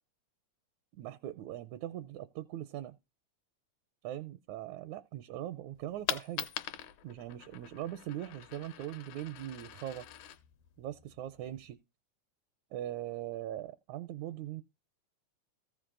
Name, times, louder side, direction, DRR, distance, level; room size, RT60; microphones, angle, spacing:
voice 1, 0.9-2.9 4.0-6.5 7.0-10.1 10.8-11.8 12.7-14.6, right 12 dB, 80° right, 1.9 m, -41 dB
Coin (dropping), 5.7-11.7, left 11 dB, 75° left, 2.3 m, -43 dB
14.5 x 5.3 x 3.7 m
omnidirectional pair, 3.6 m